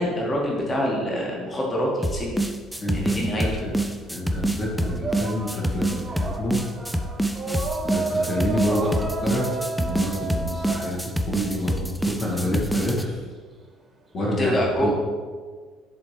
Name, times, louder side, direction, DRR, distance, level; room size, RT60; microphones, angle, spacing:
voice 1, 0.0-2.4 2.9-3.6 14.4-14.9, equal, 25° left, -2 dB, 1.7 m, -25 dB
sound 1, 2.0-13.1, right 1 dB, ahead, 0.5 m, -26 dB
voice 2, 2.8-3.7 4.1-6.6 7.8-9.5 9.8-11.0 11.2-13.2 14.1-14.6 14.8-14.9, left 1 dB, 45° left, -5 dB, 1.5 m, -28 dB
sound 2, 2.8-4.0 4.3-12.1, right 3 dB, 25° right, 1.3 m, -32 dB
10.0 x 4.0 x 3.2 m, 1.5 s
figure-of-eight pair, 55°, 0 cm